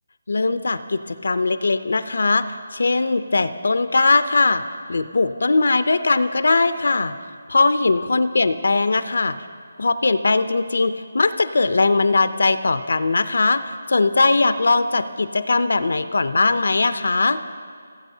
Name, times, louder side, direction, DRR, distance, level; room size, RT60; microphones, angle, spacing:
voice 1, 0.3-2.5 2.7-4.6 4.9-7.1 7.5-9.4 9.8-17.4, left 3 dB, 70° left, 12 dB, 0.4 m, -20 dB
17.5 x 8.2 x 2.7 m, 2.1 s
hypercardioid pair, 175°, 0 cm